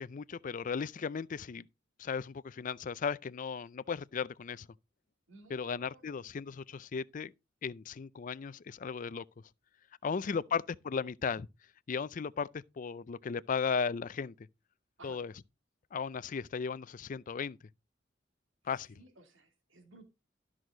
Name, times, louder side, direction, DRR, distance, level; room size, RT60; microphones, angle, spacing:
voice 1, 0.0-1.7 2.0-4.7 5.5-7.3 7.6-9.2 10.0-11.5 11.9-14.3 15.0-15.3 15.9-17.6 18.7-19.0, left 6 dB, 40° left, 0.4 m, -36 dB
voice 2, 5.3-6.3 10.0-10.5 15.0-15.2 18.9-20.1, right 2 dB, 80° right, 2.9 m, -57 dB
12.5 x 6.2 x 3.8 m
head